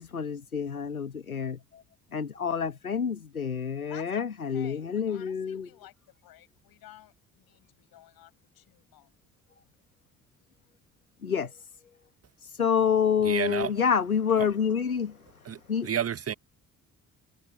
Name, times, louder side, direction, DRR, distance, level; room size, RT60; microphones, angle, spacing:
voice 1, 0.0-1.8 2.1-5.7 11.2-11.7 12.4-15.9, left 7 dB, 85° left, 1.5 m, -28 dB
voice 2, 3.9-4.3 4.5-9.2, left 13 dB, 60° left, 7.2 m, -52 dB
voice 3, 13.2-13.7 15.4-16.3, right 9 dB, 35° right, 1.5 m, -30 dB
figure-of-eight pair, 45°, 41 cm